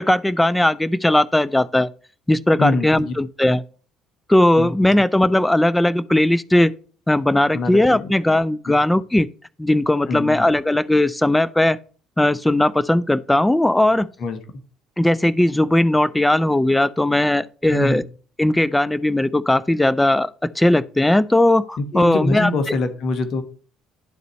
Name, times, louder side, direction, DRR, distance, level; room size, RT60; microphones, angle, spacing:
voice 1, 0.0-1.9 2.3-3.6 4.3-6.7 7.1-9.3 9.6-11.8 12.2-14.1 15.0-18.0 18.4-22.8, left 1 dB, 10° left, 0.5 m, -18 dB
voice 2, 2.6-3.1 4.6-4.7 7.5-8.1 8.7-8.8 10.1-10.5 14.2-14.4 17.7-18.0 21.9-23.4, left 2 dB, 55° left, 1.4 m, -24 dB
11.5 x 4.0 x 3.1 m
hypercardioid pair, 65°, 0 cm